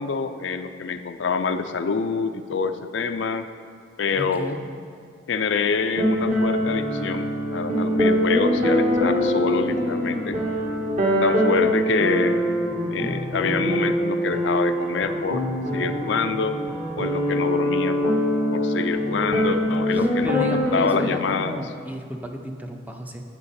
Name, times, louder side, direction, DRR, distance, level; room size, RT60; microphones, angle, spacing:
voice 1, 0.0-3.5 4.0-4.6 5.3-10.4 11.2-12.6 12.9-15.4 15.7-16.6 16.9-21.6, left 5 dB, 70° left, 9 dB, 0.5 m, -26 dB
voice 2, 4.1-4.6 19.9-23.2, equal, 10° right, 3 dB, 0.7 m, -32 dB
sound 1, 6.0-21.0, equal, 40° right, 1.7 m, -23 dB
12.5 x 7.6 x 4.2 m, 2.2 s
head